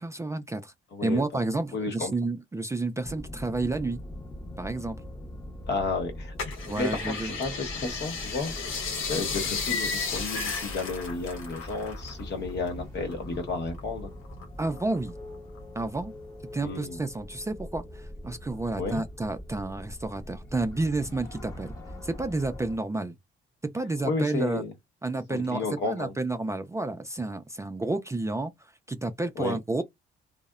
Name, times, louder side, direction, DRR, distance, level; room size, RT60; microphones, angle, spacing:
voice 1, 0.0-0.7 1.0-4.0 4.6-5.0 6.7-7.4 14.6-15.1 15.8-16.1 16.5-21.8 22.0-23.1 23.7-24.6 25.0-29.8, right 2 dB, 15° right, 0.3 m, -30 dB
voice 2, 0.9-1.2 1.7-2.1 5.7-6.3 6.8-8.5 9.1-14.1 16.6-17.0 18.8-19.0 24.0-24.7 25.3-26.1 29.4-29.6, left 3 dB, 60° left, 1.0 m, -32 dB
sound 1, 3.0-22.8, left 1 dB, 15° left, 0.7 m, -42 dB
sound 2, 6.4-12.2 12.5-13.8 14.2-15.1 15.6-15.7, left 5 dB, 90° left, 0.8 m, -34 dB
2.7 x 2.0 x 2.3 m
cardioid pair, 90°, 20 cm